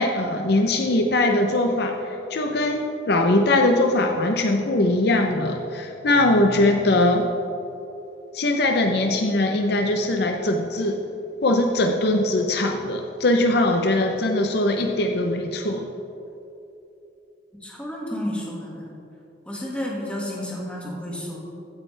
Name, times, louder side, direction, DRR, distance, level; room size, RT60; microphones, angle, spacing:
voice 1, 0.0-7.3 8.3-11.0 11.4-15.9, left 2 dB, 55° left, 4 dB, 0.7 m, -21 dB
voice 2, 17.6-18.9 19.5-21.4, left 1 dB, 5° left, -4 dB, 1.9 m, -31 dB
15.0 x 8.8 x 3.3 m, 2.9 s
head